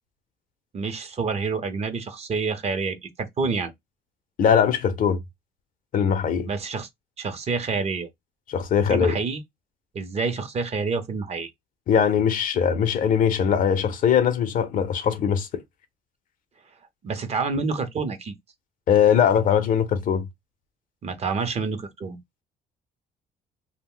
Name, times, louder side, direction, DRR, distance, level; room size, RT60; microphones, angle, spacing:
voice 1, 0.7-3.7 6.5-6.9 7.2-8.1 8.9-9.4 9.9-11.5 17.0-18.3 21.0-22.2, right 4 dB, 40° right, 0.7 m, -28 dB
voice 2, 4.4-5.2 5.9-6.5 8.5-9.2 11.9-15.6 18.9-20.3, left 8 dB, 55° left, 0.6 m, -21 dB
2.4 x 2.1 x 3.6 m
cardioid pair, 110°, 17 cm